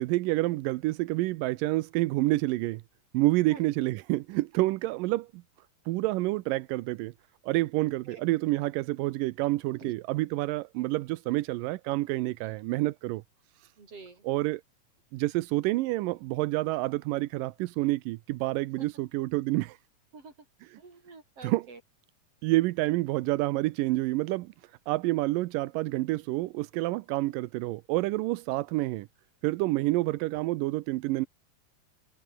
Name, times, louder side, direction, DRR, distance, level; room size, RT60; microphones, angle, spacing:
voice 1, 0.0-2.8 3.1-5.4 5.9-7.1 7.4-13.2 14.2-14.6 15.1-19.8 20.7-20.8 21.4-21.7 22.4-24.5 24.9-29.1 29.4-31.3, right 19 dB, 85° right, 2.4 m, -28 dB
voice 2, 13.8-14.2 18.8-18.9 20.1-20.3 20.8-21.8, right 4 dB, 45° right, 6.4 m, -47 dB
omnidirectional pair, 3.8 m